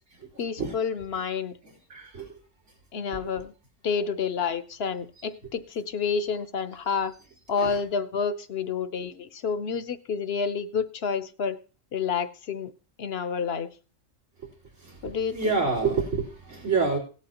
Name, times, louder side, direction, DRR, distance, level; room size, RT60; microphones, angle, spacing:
voice 1, 0.4-1.5 2.9-3.5 3.8-7.1 7.5-11.6 11.9-12.7 13.0-13.7 15.0-15.6, left 6 dB, 60° left, 0.9 m, -29 dB
voice 2, 1.9-2.3 3.2-3.3 7.6-7.8 14.8-15.0 15.3-17.0, right 4 dB, 85° right, 4.0 m, -27 dB
17.0 x 11.5 x 2.9 m
omnidirectional pair, 1.3 m